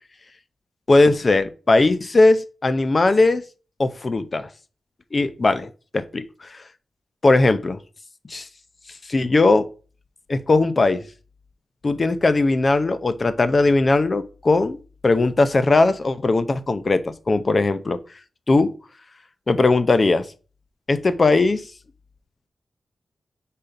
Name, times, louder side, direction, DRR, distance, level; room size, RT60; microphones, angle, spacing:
voice 1, 0.9-3.4 3.8-4.5 5.1-6.6 7.2-7.8 8.3-8.5 9.1-9.7 10.3-11.0 11.8-18.0 18.5-18.7 19.5-20.3 20.9-21.6, left 2 dB, 40° left, 12 dB, 0.6 m, -19 dB
5.2 x 4.2 x 5.0 m, 0.37 s
wide cardioid pair, 85°, 0 cm